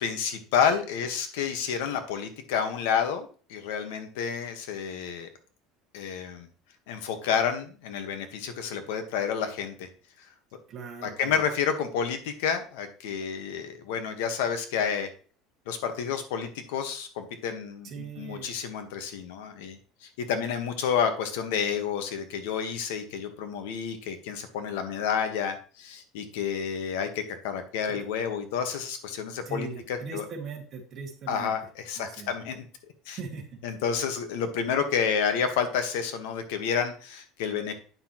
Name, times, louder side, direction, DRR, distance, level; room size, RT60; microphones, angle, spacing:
voice 1, 0.0-5.3 5.9-6.5 6.9-9.9 11.0-15.1 15.7-30.2 31.3-32.7 33.1-33.2 33.6-37.7, left 7 dB, 85° left, 7 dB, 1.3 m, -30 dB
voice 2, 10.7-11.4 17.8-18.5 27.9-28.0 29.5-31.5 32.0-32.3 33.1-33.6, right 5 dB, 30° right, 1 dB, 1.9 m, -39 dB
9.6 x 5.9 x 3.0 m, 0.41 s
cardioid pair, 170°, 0 cm